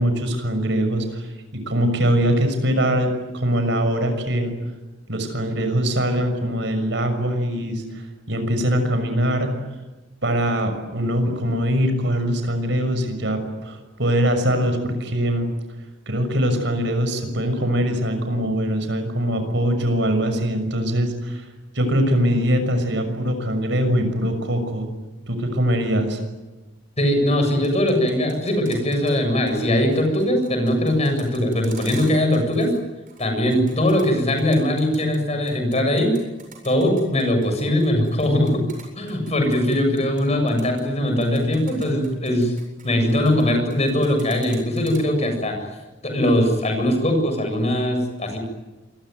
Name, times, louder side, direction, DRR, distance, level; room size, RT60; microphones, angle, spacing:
voice 1, 0.0-4.5 5.1-9.7 10.2-15.5 16.1-21.5 21.7-24.9 25.3-26.2, equal, 65° right, 7 dB, 6.5 m, -22 dB
voice 2, 27.0-32.7 33.2-36.1 36.6-38.6 39.0-42.5 42.8-45.6 46.0-48.4, left 1 dB, 35° left, 5 dB, 7.6 m, -21 dB
sound 1, 27.6-29.2 29.5-29.6 29.9-32.8 33.1-35.2 35.5-40.2 40.5-40.8 41.2-43.4 43.7-45.0, right 7 dB, 45° right, 7.9 m, -45 dB
27.5 x 22.5 x 9.4 m, 1.1 s
head